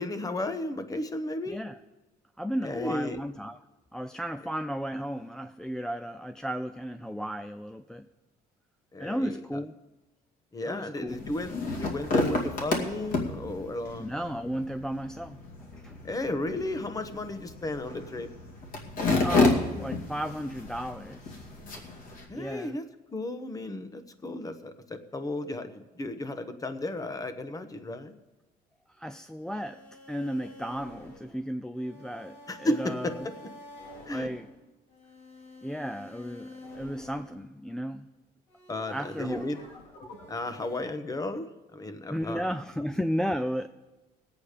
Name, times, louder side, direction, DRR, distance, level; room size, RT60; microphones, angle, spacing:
voice 1, 0.0-1.6 2.6-3.2 8.9-9.4 10.5-14.1 16.0-18.3 22.3-22.8 23.1-28.1 32.5-33.3 34.1-34.3 38.7-39.6 40.3-42.5, left 1 dB, 20° left, 9 dB, 1.1 m, -34 dB
voice 2, 1.5-1.8 2.4-3.6 3.9-8.1 9.0-9.8 10.6-11.3 14.0-15.4 15.7-16.0 19.2-21.5 22.3-22.8 28.9-29.8 30.1-33.1 34.1-34.5 35.6-38.1 38.9-39.4 42.1-43.7, equal, 5° left, 8 dB, 0.4 m, -34 dB
wood creak low sit down on loose park bench and get up, 11.1-22.2, left 3 dB, 55° left, 2.4 m, -31 dB
sound 1, 29.4-37.9 38.5-40.8, left 1 dB, 85° left, 2.6 m, -49 dB
19.5 x 8.5 x 5.0 m, 1.1 s
cardioid pair, 110°, 17 cm